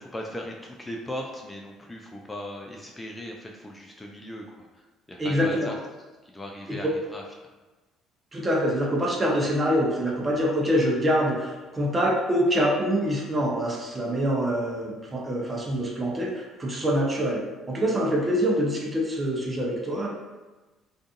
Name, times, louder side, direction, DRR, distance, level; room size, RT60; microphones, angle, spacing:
voice 1, 0.0-5.7 6.2-7.2, left 1 dB, 20° left, 0 dB, 0.3 m, -38 dB
voice 2, 5.2-5.7 6.8-6.9 8.3-20.1, equal, 30° right, -2 dB, 0.7 m, -25 dB
2.5 x 2.5 x 2.4 m, 1.2 s
hypercardioid pair, 60°, 0 cm